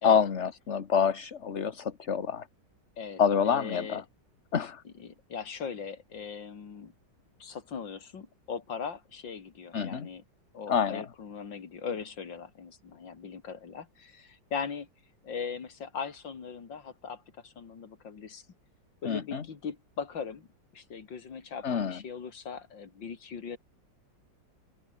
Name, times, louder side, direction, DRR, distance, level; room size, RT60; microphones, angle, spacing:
voice 1, 0.0-2.5 3.2-4.0 4.5-4.8 9.7-10.1 10.7-11.0 19.0-19.4 21.6-22.0, left 7 dB, 40° left, 1.4 m, -27 dB
voice 2, 3.0-4.0 4.8-6.9 7.4-10.2 10.5-14.9 15.2-18.4 19.0-20.5 20.7-23.6, left 6 dB, 85° left, 3.0 m, -39 dB
open air
omnidirectional pair, 2.0 m